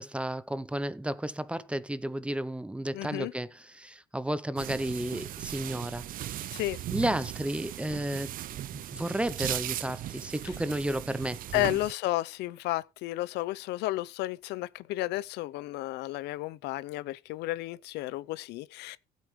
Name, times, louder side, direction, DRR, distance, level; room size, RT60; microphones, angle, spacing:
voice 1, 0.0-6.5 6.9-8.3 8.7-11.7, right 1 dB, 5° right, 0.6 m, -33 dB
voice 2, 2.9-3.3 6.5-6.8 11.5-19.0, left 17 dB, 85° left, 0.6 m, -32 dB
sound 1, 4.6-11.9, right 13 dB, 55° right, 0.5 m, -38 dB
15.5 x 8.4 x 3.2 m
cardioid pair, 110°, 17 cm